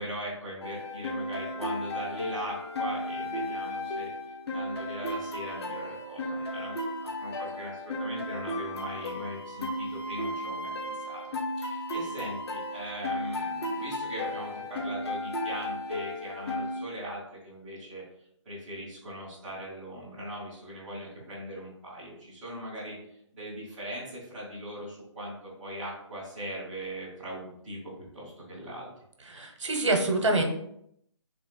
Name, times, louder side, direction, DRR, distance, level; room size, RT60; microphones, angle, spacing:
voice 1, 0.0-4.1 4.5-11.3 11.5-18.0 18.4-23.0 23.3-28.9, equal, ahead, -17 dB, 0.4 m, -40 dB
sound 1, 0.6-16.8, left 1 dB, 55° left, 1.0 m, -34 dB
voice 2, 29.3-30.4, right 2 dB, 80° right, 3 dB, 1.2 m, -25 dB
3.5 x 3.1 x 4.3 m, 0.72 s
hypercardioid pair, 175°, 16 cm